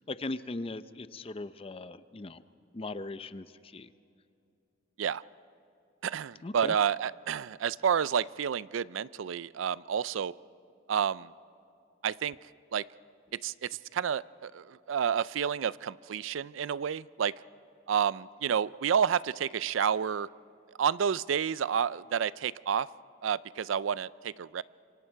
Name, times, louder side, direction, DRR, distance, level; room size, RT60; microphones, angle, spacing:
voice 1, 0.0-2.4 2.7-3.9 6.4-6.8, left 2 dB, 30° left, 13 dB, 0.5 m, -39 dB
voice 2, 6.0-10.4 10.9-11.3 12.0-12.8 13.4-17.3 17.9-20.3 20.8-22.9 23.2-24.6, right 7 dB, 85° right, 19 dB, 0.4 m, -30 dB
26.5 x 24.0 x 4.6 m, 2.5 s
head